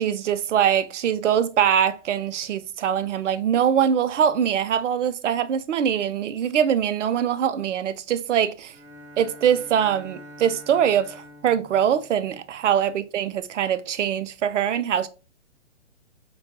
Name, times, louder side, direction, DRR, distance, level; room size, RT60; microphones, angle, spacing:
voice 1, 0.0-8.7 9.2-15.1, right 9 dB, 80° right, 0.5 m, -23 dB
Bowed string instrument, 8.6-13.1, equal, 15° right, 0.7 m, -47 dB
4.2 x 2.2 x 2.9 m
hypercardioid pair, 135°, 36 cm